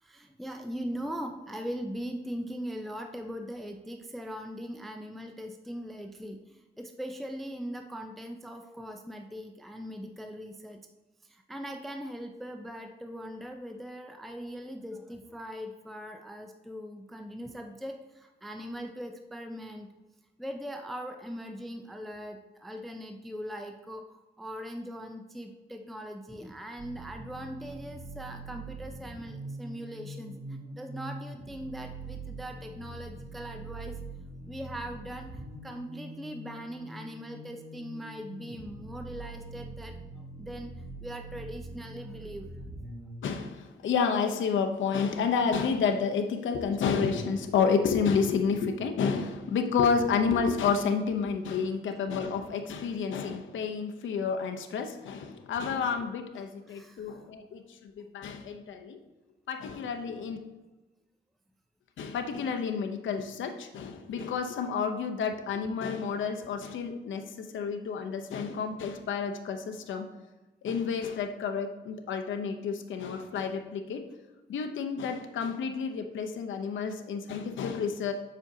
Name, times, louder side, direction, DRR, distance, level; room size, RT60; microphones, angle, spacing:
voice 1, 0.0-10.8 11.2-19.9 20.4-34.0 34.5-40.7 41.0-42.5 56.4-57.6 58.0-58.1, equal, ahead, 4 dB, 0.4 m, -40 dB
sound 1, 26.8-43.2, right 2 dB, 65° right, 1.2 m, -43 dB
voice 2, 43.2-59.0 59.5-60.4 62.0-70.1 70.6-74.0 74.5-78.1, left 6 dB, 85° left, 5 dB, 0.6 m, -30 dB
7.4 x 5.1 x 2.7 m, 1.1 s
cardioid pair, 100°, 19 cm